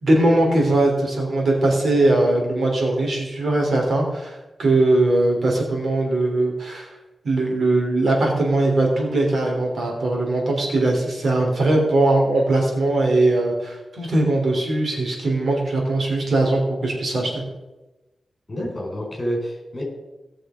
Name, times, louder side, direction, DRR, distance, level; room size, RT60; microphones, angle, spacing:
voice 1, 0.0-6.9 7.2-17.4, right 2 dB, 60° right, 0 dB, 3.4 m, -20 dB
voice 2, 18.5-19.8, equal, 30° left, 0 dB, 4.2 m, -28 dB
18.0 x 6.5 x 5.1 m, 1.1 s
wide cardioid pair, 115°, 0 cm